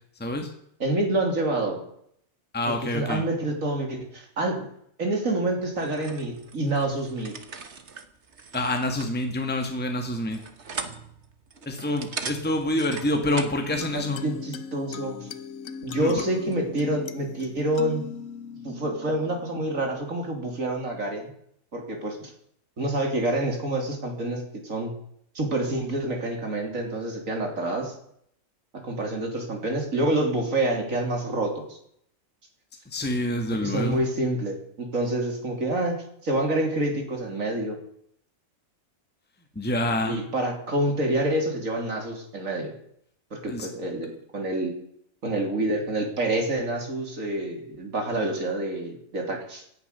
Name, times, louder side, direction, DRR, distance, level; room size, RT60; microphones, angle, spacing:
voice 1, 0.8-1.8 2.7-4.7 5.0-7.4 13.9-15.3 15.8-18.1 18.6-21.3 21.7-22.3 22.8-24.9 25.4-28.0 28.7-31.8 33.5-37.8 40.1-42.7 43.3-44.7 45.2-49.6, right 1 dB, 75° right, 3 dB, 3.6 m, -27 dB
voice 2, 2.5-3.2 8.5-10.4 11.6-14.2 16.0-16.2 32.9-34.0 39.5-40.2 43.5-43.7, left 1 dB, 5° left, 4 dB, 1.6 m, -27 dB
sound 1, 5.7-13.7, right 5 dB, 55° right, 1.7 m, -40 dB
sound 2, 13.2-20.2, left 6 dB, 75° left, 1.3 m, -39 dB
18.0 x 10.5 x 6.8 m, 0.70 s
omnidirectional pair, 1.4 m